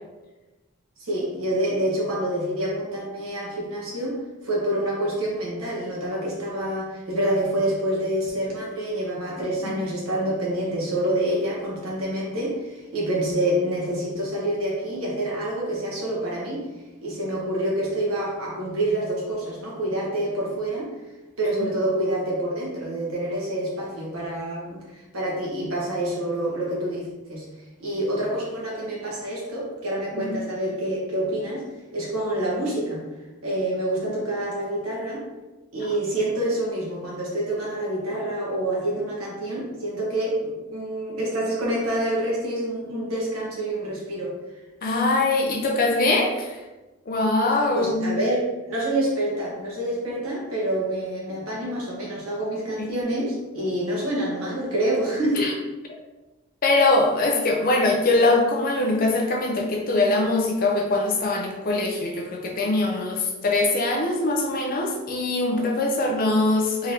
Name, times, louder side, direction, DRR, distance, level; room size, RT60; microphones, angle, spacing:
voice 1, 1.0-4.1 4.4-16.6 17.0-20.9 21.4-27.5 27.8-31.7 31.9-33.0 33.4-35.2 35.7-44.3 47.7-55.5, right 1 dB, 85° right, -4 dB, 1.3 m, -27 dB
voice 2, 44.8-46.6 47.1-48.1 55.4-55.5 56.6-66.9, left 2 dB, 45° left, 2 dB, 0.5 m, -22 dB
3.7 x 3.3 x 2.8 m, 1.1 s
head